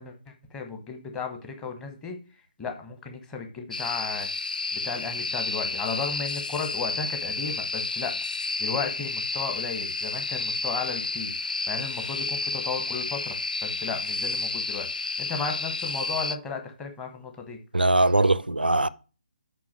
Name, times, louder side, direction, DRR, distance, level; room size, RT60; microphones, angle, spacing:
voice 1, 0.0-2.2 2.6-4.3 4.7-8.2 8.6-17.6, left 5 dB, 10° left, 1.2 m, -35 dB
sound 1, 3.7-16.4, left 4 dB, 65° left, 0.5 m, -31 dB
voice 2, 17.7-18.9, right 2 dB, 85° right, 0.4 m, -21 dB
6.1 x 5.2 x 6.2 m
figure-of-eight pair, 145°, 5 cm